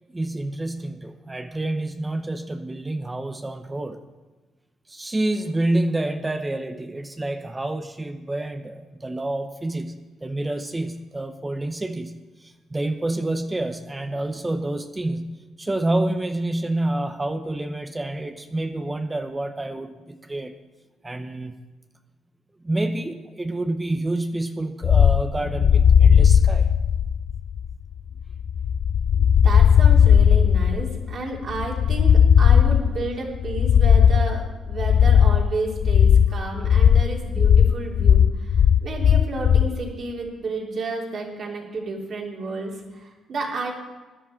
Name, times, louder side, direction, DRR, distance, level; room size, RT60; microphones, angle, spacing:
voice 1, 0.1-4.0 4.9-20.5 21.0-21.6 22.6-26.7, right 2 dB, 15° right, 7 dB, 0.8 m, -28 dB
sound 1, 24.8-39.7, left 8 dB, 60° left, 0.4 m, -17 dB
voice 2, 29.4-43.7, right 3 dB, 55° right, -2 dB, 3.3 m, -31 dB
16.0 x 10.5 x 4.5 m, 1.2 s
cardioid pair, 90°, 0 cm